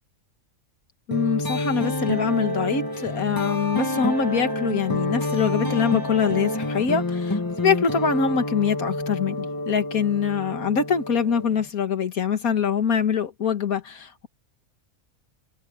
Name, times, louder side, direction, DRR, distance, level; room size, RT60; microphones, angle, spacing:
voice 1, 1.1-14.3, left 6 dB, 85° left, 2.2 m, -24 dB
sound 1, 1.1-11.7, left 1 dB, 15° left, 1.4 m, -28 dB
omnidirectional pair, 1.5 m